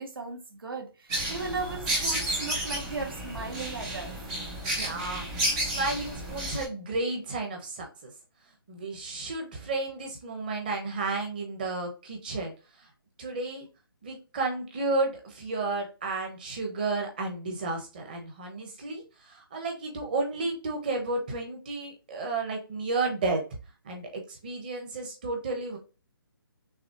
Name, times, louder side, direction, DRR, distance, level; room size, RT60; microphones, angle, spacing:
voice 1, 0.0-4.2, right 3 dB, 65° right, 1.4 m, -36 dB
sound 1, 1.1-6.7, right 1 dB, 5° right, 0.4 m, -31 dB
voice 2, 4.7-8.1 8.7-12.5 12.8-12.9 13.2-13.7 14.0-23.4 23.8-25.8, right 3 dB, 20° right, 1.0 m, -32 dB
6.0 x 2.9 x 2.9 m
hypercardioid pair, 175°, 13 cm